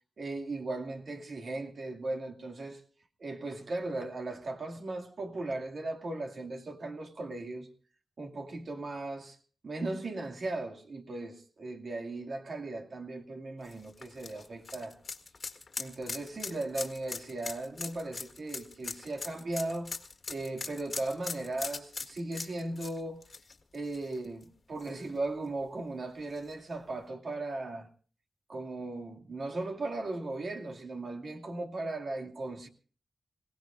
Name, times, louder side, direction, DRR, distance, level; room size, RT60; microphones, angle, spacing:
voice 1, 0.2-2.8 3.2-7.7 8.2-9.4 9.6-15.0 15.8-23.2 23.7-27.9 28.5-32.7, right 2 dB, 65° right, 2.3 m, -37 dB
sound 1, 13.6-24.4 24.8-24.9 26.4-26.5, left 4 dB, 55° left, 1.7 m, -41 dB
26.5 x 17.5 x 2.6 m
wide cardioid pair, 95°, 0 cm